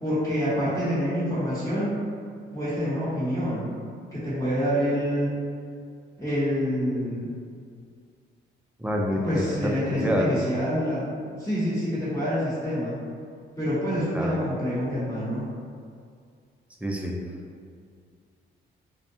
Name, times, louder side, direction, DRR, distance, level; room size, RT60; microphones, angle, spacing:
voice 1, 0.0-2.0 2.5-3.7 4.1-5.4 6.2-7.3 9.1-11.1 11.4-13.0 13.6-15.4, equal, 15° left, -12 dB, 0.9 m, -27 dB
voice 2, 8.8-10.4 14.1-14.4 16.8-17.2, equal, 5° right, -1 dB, 0.3 m, -27 dB
2.6 x 2.1 x 2.7 m, 2.2 s
cardioid pair, 90°, 20 cm